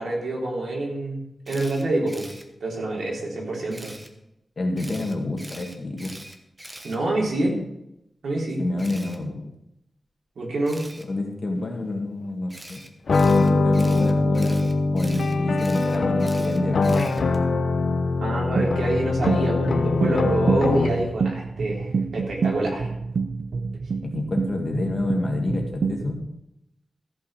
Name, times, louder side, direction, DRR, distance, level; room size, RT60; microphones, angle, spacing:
voice 1, 0.0-2.3 2.6-3.9 6.8-7.5 8.2-8.6 10.3-10.8 18.2-22.9, right 2 dB, 85° right, -2 dB, 3.5 m, -26 dB
Camera, 1.4-2.4 3.7-4.1 4.8-7.5 8.8-9.2 10.6-11.0 12.5-17.4, right 1 dB, 15° right, 1.1 m, -43 dB
voice 2, 4.6-6.1 8.6-9.4 11.1-12.8 13.3-14.6 14.9-17.3 24.0-26.2, left 2 dB, 40° left, 1 dB, 1.9 m, -28 dB
sound 1, 13.1-21.1, left 3 dB, 60° left, 0.8 m, -22 dB
sound 2, 18.6-26.3, right 5 dB, 60° right, 0.5 m, -28 dB
14.5 x 5.5 x 6.6 m, 0.84 s
wide cardioid pair, 180°, 0 cm